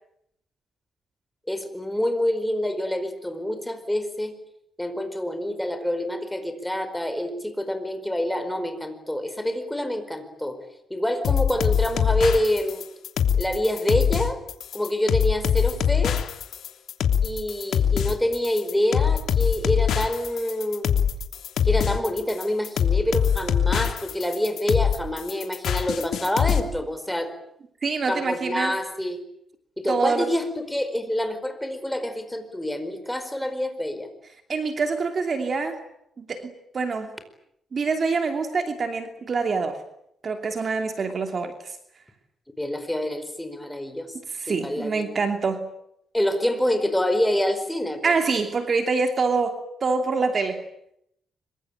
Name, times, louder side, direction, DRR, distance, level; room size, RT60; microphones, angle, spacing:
voice 1, 1.5-4.3 4.8-10.6 10.9-12.8 13.4-14.4 14.7-16.2 17.2-20.9 21.6-27.3 28.1-29.2 29.8-34.1 42.6-44.1 44.5-45.0 46.1-48.1, left 1 dB, 5° left, 8 dB, 4.8 m, -26 dB
sound 1, 11.2-26.6, left 8 dB, 70° left, 3.0 m, -23 dB
voice 2, 27.8-28.8 29.9-30.3 34.5-35.8 36.2-37.1 37.7-39.8 40.2-41.8 44.3-45.6 48.0-50.6, right 4 dB, 40° right, 6 dB, 2.8 m, -25 dB
26.0 x 24.0 x 9.1 m, 0.75 s
cardioid pair, 135°, 0 cm